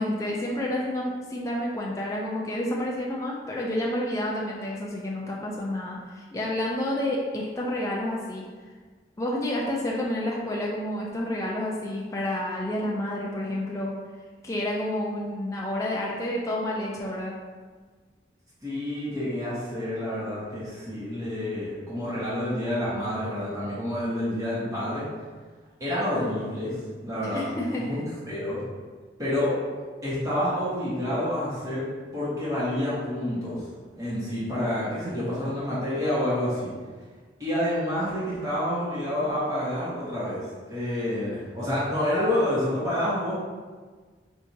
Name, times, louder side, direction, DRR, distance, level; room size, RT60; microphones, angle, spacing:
voice 1, 0.0-8.4 9.2-13.9 14.4-17.4 27.2-28.0, left 1 dB, 15° left, -3 dB, 0.4 m, -29 dB
voice 2, 18.6-25.0 25.8-26.8 27.0-27.4 27.8-28.6 29.2-29.5 30.0-31.9 32.1-33.6 33.9-36.7 37.4-43.4, left 1 dB, 20° right, -10 dB, 1.2 m, -28 dB
4.6 x 2.7 x 2.7 m, 1.5 s
head